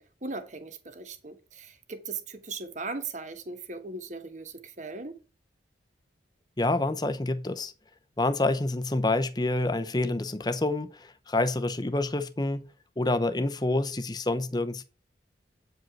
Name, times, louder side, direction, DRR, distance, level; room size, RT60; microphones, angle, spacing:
voice 1, 0.0-5.2, right 3 dB, 40° right, 1.2 m, -38 dB
voice 2, 6.6-7.7 8.2-12.7 13.0-14.8, left 2 dB, 20° left, 0.7 m, -27 dB
9.0 x 5.1 x 6.0 m
head